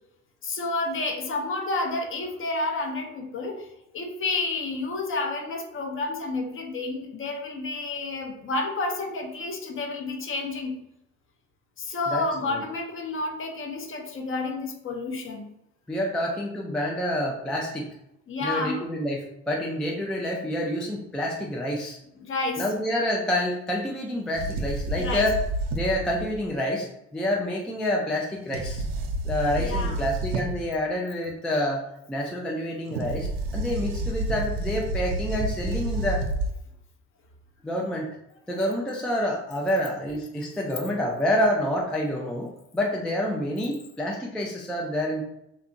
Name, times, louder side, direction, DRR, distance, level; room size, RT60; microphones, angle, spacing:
voice 1, 0.4-3.7 3.9-10.8 11.8-15.5 18.3-18.8 22.2-22.7 25.0-25.3 29.6-30.0, left 3 dB, 35° left, 3 dB, 0.7 m, -30 dB
voice 2, 12.1-12.6 15.9-17.9 18.4-22.0 22.6-25.4 25.7-26.9 27.1-28.9 29.2-31.8 32.1-36.2 37.6-38.1 38.5-42.5 42.7-45.2, left 1 dB, ahead, -2 dB, 0.3 m, -28 dB
sound 1, 24.3-26.4 28.5-30.7 32.9-36.5, right 1 dB, 65° right, 0.5 m, -29 dB
2.7 x 2.2 x 2.5 m, 0.82 s
hypercardioid pair, 60°, 38 cm